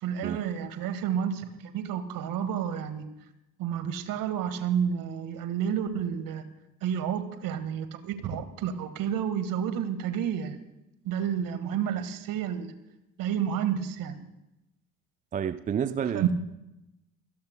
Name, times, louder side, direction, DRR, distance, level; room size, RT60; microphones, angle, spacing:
voice 1, 0.0-3.1 3.6-6.5 6.8-10.6 11.0-12.7 13.2-14.2 16.1-16.3, right 8 dB, 50° right, 10 dB, 1.6 m, -30 dB
voice 2, 15.3-16.3, right 8 dB, 20° right, 14 dB, 0.5 m, -30 dB
26.0 x 17.0 x 2.2 m, 0.92 s
figure-of-eight pair, 60°, 43 cm